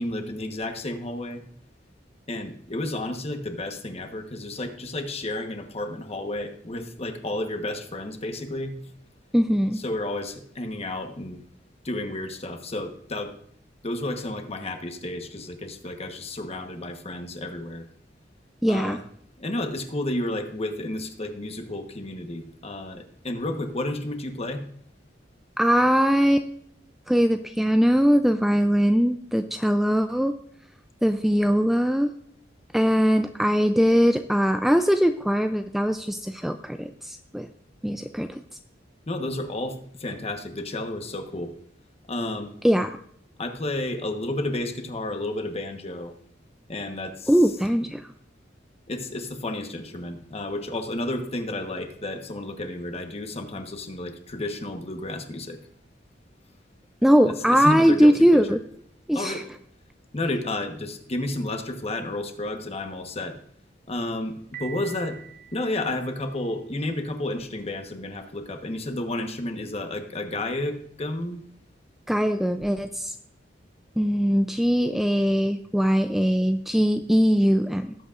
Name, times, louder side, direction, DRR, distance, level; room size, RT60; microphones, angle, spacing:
voice 1, 0.0-1.4 2.3-8.7 9.8-11.4 11.8-13.3 13.8-17.8 18.6-19.0 19.4-24.6 39.1-41.5 42.1-42.5 43.4-46.1 46.7-47.3 47.8-47.9 48.9-55.6 57.2-58.6 59.1-59.4 60.1-63.4 63.9-65.2 65.5-71.4, left 1 dB, 35° left, 6 dB, 1.1 m, -31 dB
voice 2, 9.3-9.8 18.6-19.0 25.6-26.5 27.1-30.3 31.0-32.1 32.7-37.5 37.8-38.4 42.6-43.0 47.3-48.1 57.0-58.6 59.1-59.4 72.1-73.1 74.0-77.9, equal, ahead, 7 dB, 0.3 m, -21 dB
Piano, 64.5-66.5, right 9 dB, 45° right, 1.2 m, -44 dB
18.5 x 8.2 x 2.5 m, 0.66 s
head